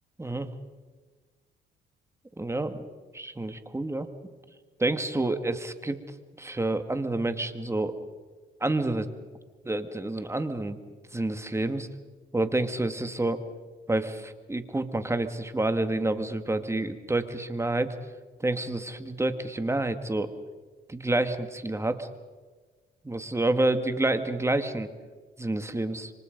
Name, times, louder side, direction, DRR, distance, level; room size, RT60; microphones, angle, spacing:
voice 1, 2.4-2.8 3.1-4.1 4.8-6.0 6.4-8.0 8.6-9.1 9.6-10.8 11.1-11.9 12.3-13.4 13.9-17.9 18.4-20.3 20.9-22.1 23.0-24.9 25.4-26.1, right 2 dB, 15° right, 9 dB, 2.0 m, -28 dB
28.0 x 24.5 x 5.3 m, 1.4 s
cardioid pair, 90°, 20 cm